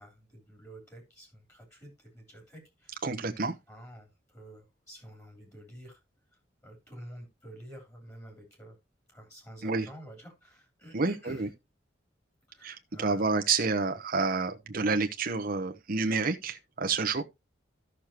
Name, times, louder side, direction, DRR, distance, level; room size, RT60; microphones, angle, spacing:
voice 1, 0.0-3.0 3.4-6.0 6.3-8.8 9.1-11.5 12.5-13.4, equal, 15° left, 3.2 m, -49 dB
voice 2, 3.0-3.5 9.6-9.9 10.9-11.5 12.6-17.2, right 4 dB, 50° right, 0.9 m, -29 dB
13.5 x 6.4 x 2.9 m
head